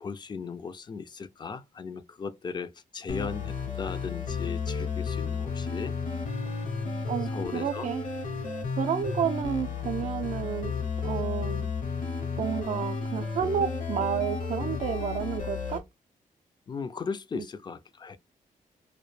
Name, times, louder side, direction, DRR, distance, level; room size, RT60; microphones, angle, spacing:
voice 1, 0.0-5.9 7.3-7.9 16.7-18.2, left 5 dB, 30° left, 0.3 m, -37 dB
sound 1, 3.1-15.8, left 5 dB, 60° left, 0.7 m, -32 dB
voice 2, 7.1-8.0 8.7-10.7 11.0-11.7 12.4-15.8 17.3-17.4, right 8 dB, 55° right, 0.4 m, -31 dB
2.1 x 2.1 x 3.0 m
cardioid pair, 70°, 15 cm